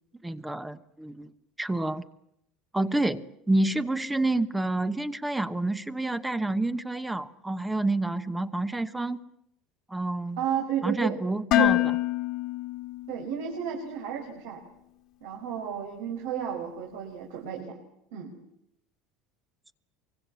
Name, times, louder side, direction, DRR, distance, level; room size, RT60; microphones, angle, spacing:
voice 1, 0.2-1.3 1.6-2.0 2.7-9.2 9.9-10.4 10.8-11.8, right 2 dB, 5° right, 11 dB, 1.0 m, -28 dB
voice 2, 10.4-11.2 11.6-11.7 13.1-14.6 15.2-17.8 18.1-18.3, right 8 dB, 85° right, 2 dB, 5.0 m, -32 dB
Dishes pots and pans, 11.5-13.6, left 15 dB, 50° left, 1.7 m, -26 dB
24.5 x 23.5 x 8.4 m, 0.76 s
cardioid pair, 145°, 0 cm